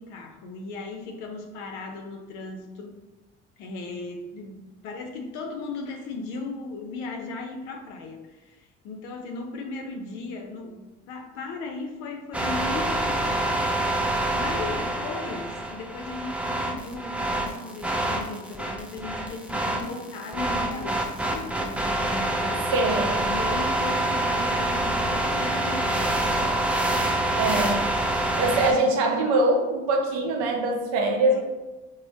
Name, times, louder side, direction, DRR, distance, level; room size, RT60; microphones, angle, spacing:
voice 1, 0.0-3.0 3.6-14.0 14.3-22.7 23.3-27.2 31.3-31.4, left 3 dB, 70° left, 4 dB, 0.6 m, -37 dB
sound 1, 12.3-28.7, right 1 dB, 5° right, 0.4 m, -26 dB
voice 2, 22.7-23.3 27.3-27.8 28.4-31.4, right 2 dB, 70° right, 2 dB, 0.6 m, -23 dB
2.5 x 2.1 x 3.2 m, 1.1 s
hypercardioid pair, 55°, 31 cm